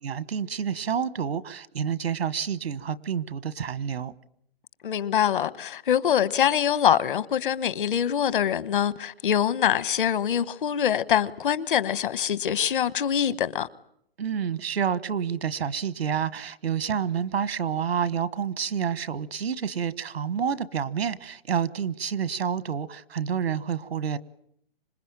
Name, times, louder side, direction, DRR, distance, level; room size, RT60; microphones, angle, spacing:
voice 1, 0.0-4.1 14.2-24.2, right 7 dB, 90° right, 1.4 m, -29 dB
voice 2, 4.8-13.7, left 9 dB, 55° left, 1.3 m, -24 dB
26.5 x 21.0 x 8.9 m
hypercardioid pair, 165°, 30 cm